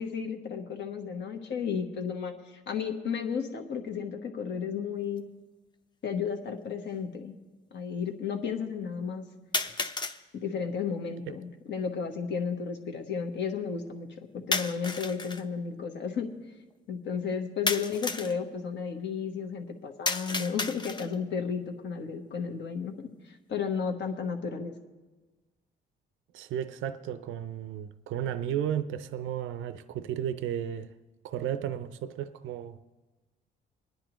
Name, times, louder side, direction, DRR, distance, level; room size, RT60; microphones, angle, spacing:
voice 1, 0.0-5.2 6.0-7.3 7.7-9.2 10.3-16.3 16.9-24.8, left 6 dB, 65° left, 1.3 m, -33 dB
sound 1, 5.2-5.3 6.3-6.4 9.5-10.2 14.5-15.4 17.7-18.4 20.1-21.2, left 3 dB, 20° left, 0.6 m, -32 dB
voice 2, 26.3-30.9 31.2-32.8, right 10 dB, 80° right, 0.5 m, -33 dB
23.5 x 10.5 x 3.0 m
cardioid pair, 90°, 20 cm